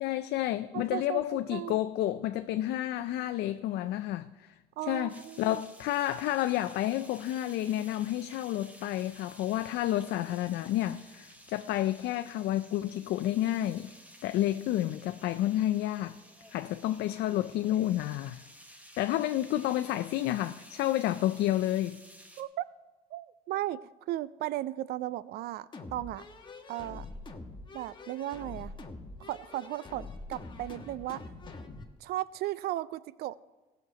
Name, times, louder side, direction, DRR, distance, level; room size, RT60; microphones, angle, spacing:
voice 1, 0.0-4.5 4.9-13.9 14.2-16.2 16.5-18.4 19.0-22.0, left 13 dB, 75° left, 0.4 m, -30 dB
voice 2, 0.7-1.8 4.8-5.6 22.4-22.7 23.1-23.8 24.1-26.2 26.7-27.1 27.7-28.7 29.2-31.2 32.0-33.4, right 14 dB, 70° right, 0.4 m, -36 dB
sound 1, 5.1-22.4, equal, 10° right, 1.2 m, -54 dB
sound 2, 25.7-31.9, left 3 dB, 30° left, 1.2 m, -45 dB
16.5 x 6.5 x 5.6 m
cardioid pair, 110°, 17 cm